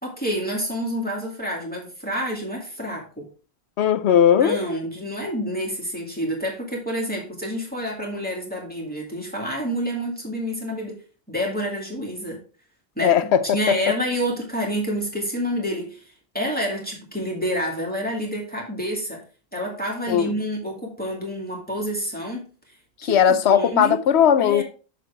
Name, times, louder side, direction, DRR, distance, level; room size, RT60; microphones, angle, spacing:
voice 1, 0.0-3.3 4.4-11.0 11.3-12.4 13.0-16.0 16.3-19.2 19.5-22.5 23.0-24.0 24.4-24.6, equal, 10° left, 2.4 m, -28 dB
voice 2, 3.8-4.6 13.0-13.7 20.1-20.3 23.1-24.6, left 8 dB, 90° left, 1.0 m, -18 dB
7.5 x 6.7 x 3.4 m
omnidirectional pair, 1.1 m